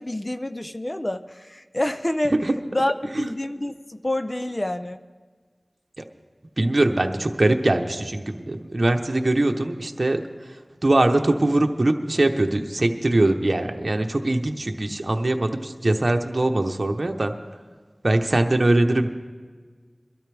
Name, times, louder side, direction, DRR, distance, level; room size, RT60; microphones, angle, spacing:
voice 1, 0.0-2.3 2.7-5.0, left 1 dB, 30° left, 9 dB, 0.6 m, -27 dB
voice 2, 6.6-17.3 18.0-19.1, right 2 dB, 55° right, 4 dB, 0.9 m, -22 dB
22.0 x 12.5 x 3.5 m, 1.5 s
wide cardioid pair, 45°, 0 cm